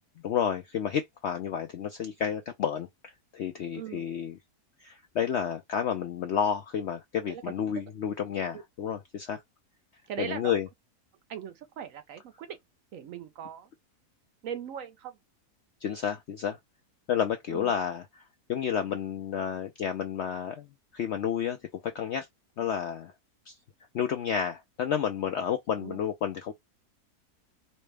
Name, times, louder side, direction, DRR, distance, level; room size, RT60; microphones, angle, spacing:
voice 1, 0.2-4.4 4.8-9.4 10.2-10.7 15.8-16.6 17.1-18.2 18.5-20.7 20.9-21.6 21.8-22.3 22.6-23.1 23.5-23.6 23.9-26.5, left 8 dB, 70° left, 0.6 m, -31 dB
voice 2, 3.7-4.1 7.3-7.4 10.1-10.5 11.3-12.6 12.9-13.7 14.4-15.1 17.5-17.7 25.8-26.0, right 8 dB, 65° right, 0.9 m, -39 dB
4.2 x 2.1 x 3.2 m
omnidirectional pair, 1.7 m